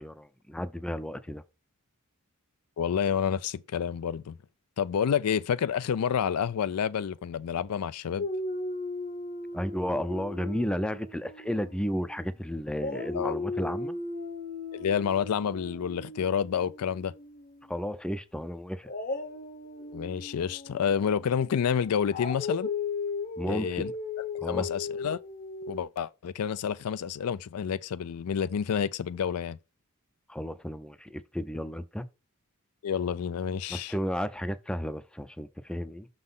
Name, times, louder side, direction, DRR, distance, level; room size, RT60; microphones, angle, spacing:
voice 1, 0.0-1.4 9.5-14.0 17.7-18.9 23.4-23.9 24.4-24.7 30.3-32.1 33.7-36.1, equal, 5° left, 0.4 m, -33 dB
voice 2, 2.8-4.4 4.8-8.3 13.1-13.3 14.7-17.1 19.9-22.7 23.5-23.9 24.2-25.2 25.7-29.6 32.8-33.9, left 7 dB, 85° left, 0.4 m, -29 dB
Dog, 8.2-12.3 12.7-17.7 18.8-25.8, left 3 dB, 40° left, 0.8 m, -37 dB
6.3 x 3.9 x 5.4 m
head